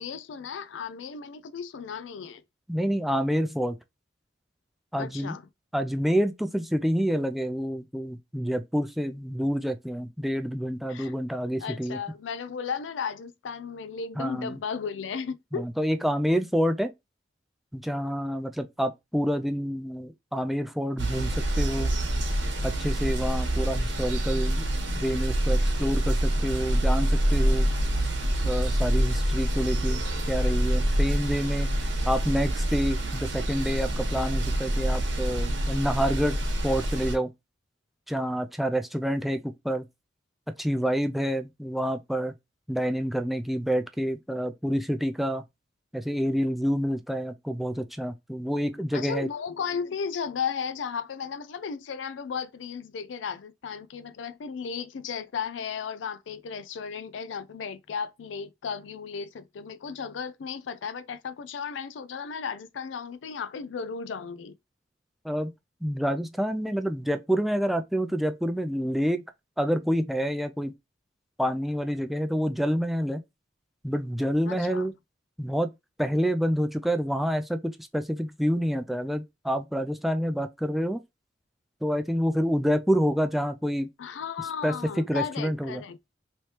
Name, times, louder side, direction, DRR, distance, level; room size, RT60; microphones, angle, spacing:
voice 1, 0.0-2.4 5.0-5.4 10.9-11.1 11.6-15.7 48.9-64.5 74.5-74.9 84.0-86.0, left 6 dB, 85° left, 0.4 m, -35 dB
voice 2, 2.7-3.8 4.9-5.4 5.7-12.0 14.2-14.6 15.5-16.9 17.7-21.9 22.6-24.6 25.0-27.7 28.4-31.7 32.0-37.3 38.1-39.9 40.6-42.3 42.7-45.4 45.9-49.3 65.2-65.5 65.8-69.2 69.6-70.7 71.4-73.2 73.8-74.9 75.4-75.7 76.0-81.0 81.8-83.9 84.6-85.8, equal, ahead, 0.3 m, -28 dB
sound 1, 21.0-37.1, right 1 dB, 90° right, 1.2 m, -26 dB
3.1 x 3.1 x 2.8 m
head